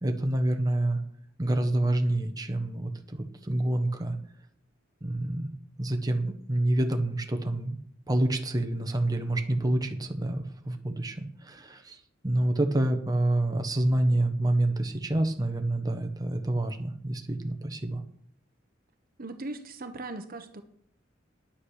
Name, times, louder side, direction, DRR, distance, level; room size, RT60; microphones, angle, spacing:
voice 1, 0.0-1.0 1.4-3.2 3.4-4.1 5.0-5.5 5.8-7.8 8.1-12.0 12.2-18.0, right 1 dB, 20° right, 4 dB, 1.2 m, -27 dB
voice 2, 19.2-20.6, right 2 dB, 50° right, 8 dB, 1.1 m, -38 dB
10.0 x 8.7 x 6.5 m, 0.65 s
head